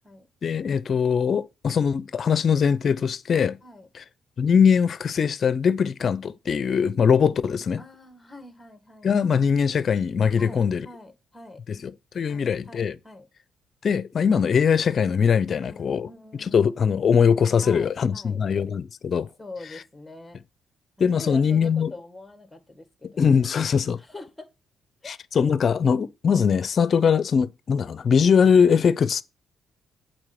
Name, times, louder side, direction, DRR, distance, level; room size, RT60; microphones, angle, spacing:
voice 1, 0.4-3.6 4.4-7.8 9.0-10.9 11.7-12.9 13.8-16.1 16.4-19.3 21.0-21.9 23.2-24.0 25.1-29.2, left 6 dB, 50° left, 0.7 m, -21 dB
voice 2, 7.8-9.4 10.4-11.6 12.3-13.3 15.4-16.7 17.6-18.4 19.4-20.4 21.0-23.5 24.0-24.5 25.0-25.2, left 2 dB, 10° left, 1.8 m, -44 dB
8.0 x 4.4 x 5.9 m
cardioid pair, 90°, 0 cm